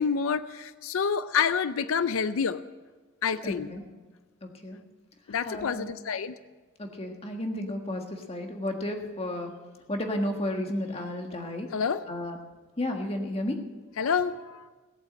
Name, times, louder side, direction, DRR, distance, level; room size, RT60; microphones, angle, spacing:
voice 1, 0.0-2.6 3.2-3.7 5.3-6.3 11.7-12.0 14.0-14.7, left 6 dB, 85° left, 13 dB, 0.5 m, -28 dB
voice 2, 3.4-3.8 4.4-4.8 5.4-5.9 6.8-9.5 9.9-11.7 12.1-12.4 12.8-13.6, left 1 dB, 30° left, 3 dB, 1.6 m, -32 dB
18.0 x 8.4 x 7.7 m, 1.3 s
head